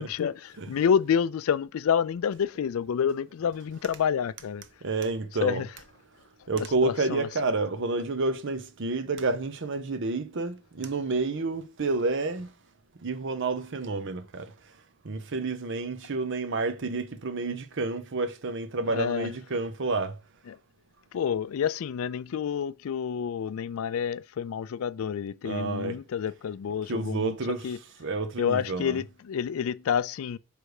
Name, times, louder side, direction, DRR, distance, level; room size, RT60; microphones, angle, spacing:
voice 1, 0.0-4.6 5.4-5.7 6.8-7.3 18.9-19.3 20.5-20.6 21.1-27.4 27.6-27.8 28.4-30.4, left 7 dB, 70° left, 0.3 m, -28 dB
voice 2, 4.8-5.6 6.5-12.5 13.0-14.7 15.0-20.2 25.4-26.0 26.9-27.7 28.0-29.0, right 3 dB, 60° right, 0.8 m, -29 dB
6.3 x 3.3 x 4.8 m
head